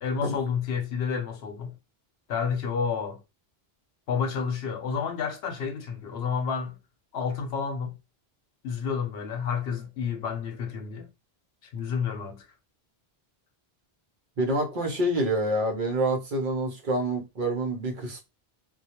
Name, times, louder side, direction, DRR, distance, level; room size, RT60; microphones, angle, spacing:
voice 1, 0.0-1.7 2.3-3.2 4.1-6.8 7.1-8.0 8.6-11.1 11.7-12.5, left 6 dB, 80° left, 0.9 m, -30 dB
voice 2, 14.4-18.2, right 1 dB, 55° right, 0.8 m, -27 dB
2.2 x 2.1 x 2.8 m
omnidirectional pair, 1.1 m